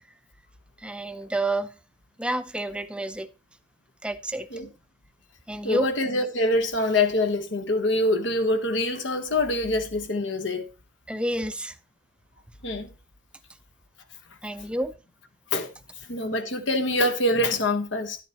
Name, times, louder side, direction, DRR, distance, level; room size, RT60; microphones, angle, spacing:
voice 1, 0.8-1.7 2.2-3.3 4.0-4.5 5.5-5.9 11.1-11.8 14.4-14.9, right 1 dB, 5° right, 0.5 m, -29 dB
voice 2, 5.6-10.7 12.6-12.9 15.5-15.7 16.1-18.2, left 1 dB, 70° left, 1.3 m, -25 dB
11.0 x 8.9 x 3.0 m
head